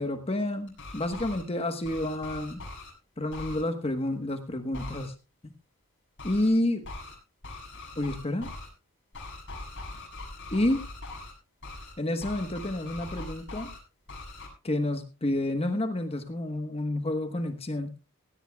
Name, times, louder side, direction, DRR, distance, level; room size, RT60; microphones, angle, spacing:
voice 1, 0.0-2.6 3.2-5.1 5.4-5.5 6.2-6.8 8.0-8.5 10.5-10.8 12.0-13.7 14.6-17.9, left 1 dB, 25° left, 7 dB, 1.2 m, -29 dB
sound 1, 0.7-1.4 1.8-2.9 3.3-3.6 4.7-5.1 6.2-6.5 6.8-7.1 7.4-8.7 9.1-11.3 11.6-11.9 12.2-13.8 14.1-14.5, left 2 dB, 55° left, 7.0 m, -41 dB
17.0 x 17.0 x 2.3 m, 0.31 s
head